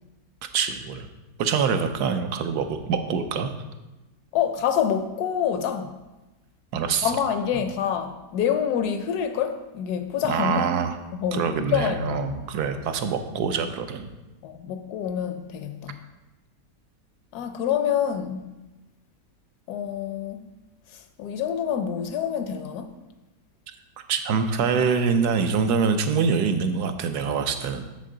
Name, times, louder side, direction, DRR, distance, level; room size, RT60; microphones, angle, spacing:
voice 1, 0.5-1.1 1.4-3.5 6.7-7.1 10.3-11.0 11.3-14.1 24.1-27.9, right 6 dB, 75° right, 7 dB, 1.1 m, -25 dB
voice 2, 4.3-5.9 7.0-10.6 11.1-12.2 14.4-16.0 17.3-18.5 19.7-20.4 20.9-22.9, left 8 dB, 75° left, 8 dB, 1.1 m, -27 dB
7.4 x 6.6 x 3.8 m, 1.1 s
omnidirectional pair, 1.8 m